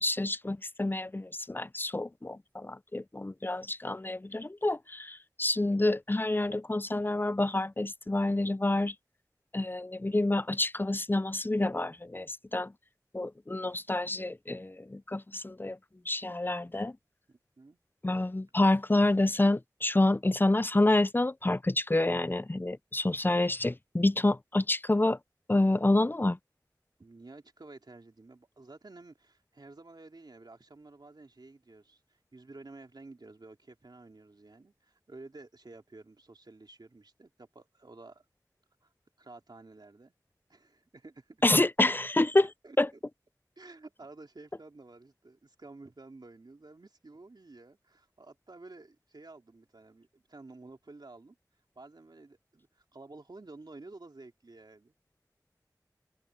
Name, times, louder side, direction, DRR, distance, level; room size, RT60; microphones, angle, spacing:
voice 1, 0.0-8.9 9.5-12.7 13.1-15.8 16.1-17.0 18.0-25.2 25.5-26.4 41.4-42.5 42.8-42.9, left 2 dB, 30° left, 0.5 m, -28 dB
voice 2, 17.3-17.8 27.0-38.2 38.8-38.9 39.2-40.1 40.5-41.4 42.6-43.0 43.6-51.4 51.7-54.9, right 2 dB, 75° right, 2.9 m, -51 dB
wide cardioid pair, 45°, 7 cm